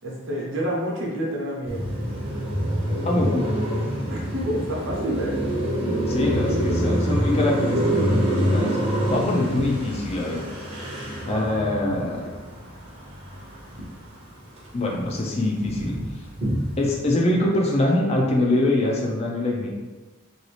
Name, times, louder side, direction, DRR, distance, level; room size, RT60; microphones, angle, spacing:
voice 1, 0.0-1.9 4.1-5.4 11.2-11.6, equal, 65° right, -3 dB, 0.8 m, -29 dB
Car passing by, 1.7-14.1 14.5-17.0, equal, 30° right, 0.6 m, -26 dB
voice 2, 3.0-3.5 5.7-8.7 9.1-10.4 11.3-12.3 14.7-15.9 16.8-19.7, left 1 dB, 30° left, -1 dB, 0.4 m, -24 dB
2.9 x 2.7 x 3.2 m, 1.2 s
head